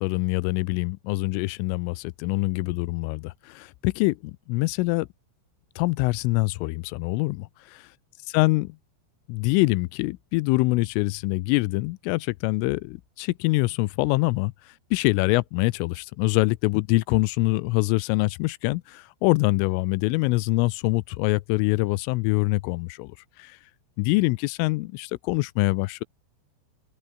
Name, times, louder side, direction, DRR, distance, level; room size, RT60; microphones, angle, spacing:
voice 1, 0.0-5.1 5.8-7.5 8.3-8.8 9.3-14.5 14.9-23.6 24.0-26.0, left 23 dB, 85° left, 3.3 m, -24 dB
open air
omnidirectional pair, 5.7 m